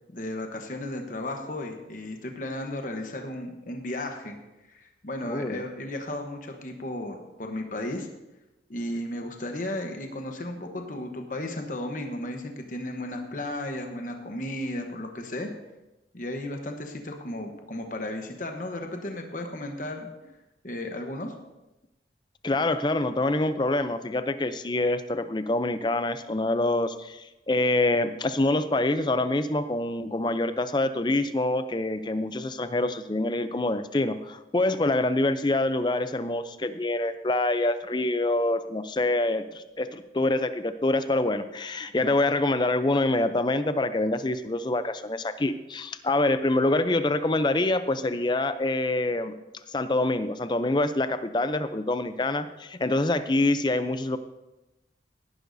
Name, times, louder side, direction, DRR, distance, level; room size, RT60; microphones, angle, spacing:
voice 1, 0.1-4.4 4.7-8.1 8.7-15.5 16.1-20.1 20.6-21.3, left 1 dB, 45° left, 4 dB, 1.0 m, -34 dB
voice 2, 5.2-5.6 22.4-49.3 49.7-54.2, left 2 dB, 25° left, 11 dB, 0.5 m, -26 dB
17.0 x 11.0 x 2.7 m, 1.0 s
head